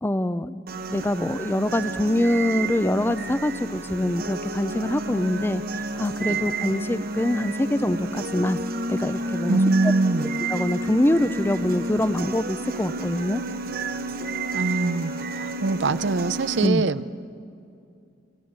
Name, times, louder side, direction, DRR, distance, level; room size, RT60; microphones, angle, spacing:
voice 1, 0.0-5.6 6.0-8.6 8.9-9.9 10.5-13.4 16.6-16.8, left 1 dB, 10° left, 14 dB, 0.5 m, -24 dB
sound 1, 0.7-16.7, right 2 dB, 55° right, 1.1 m, -31 dB
voice 2, 9.5-10.3 14.5-17.0, right 3 dB, 75° right, 14 dB, 0.7 m, -23 dB
28.5 x 16.5 x 8.7 m, 2.4 s
head